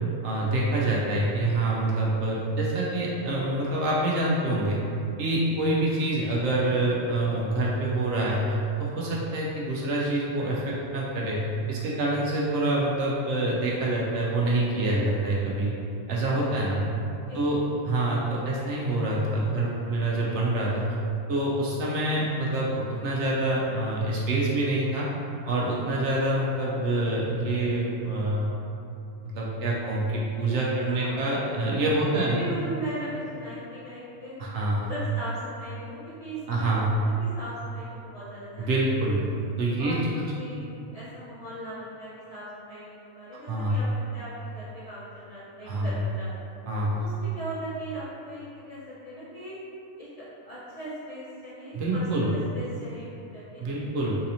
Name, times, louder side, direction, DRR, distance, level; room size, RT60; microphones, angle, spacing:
voice 1, 0.2-4.8 5.2-15.7 16.1-16.8 17.3-17.6 17.8-21.0 21.3-25.1 25.5-28.5 29.2-32.4 34.4-34.9 36.5-37.0 38.6-39.2 39.6-40.2 43.5-43.7 45.6-45.9 46.7-47.0 51.7-52.3 53.6-54.2, right 2 dB, 70° right, -5 dB, 0.8 m, -26 dB
voice 2, 30.8-31.7 32.0-34.3 34.8-38.7 39.0-39.1 39.8-40.7 40.9-46.3 47.0-49.6 50.0-53.9, equal, 40° left, -12 dB, 0.6 m, -39 dB
3.9 x 2.8 x 2.6 m, 2.7 s
omnidirectional pair, 1.4 m